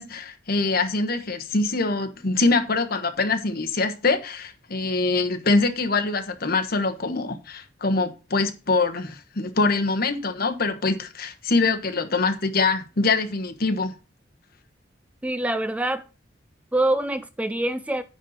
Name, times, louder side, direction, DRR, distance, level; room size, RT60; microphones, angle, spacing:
voice 1, 0.0-13.9, left 3 dB, 50° left, 1.3 m, -24 dB
voice 2, 15.2-16.0 16.7-18.0, right 1 dB, 5° right, 0.4 m, -25 dB
9.8 x 4.3 x 6.6 m
head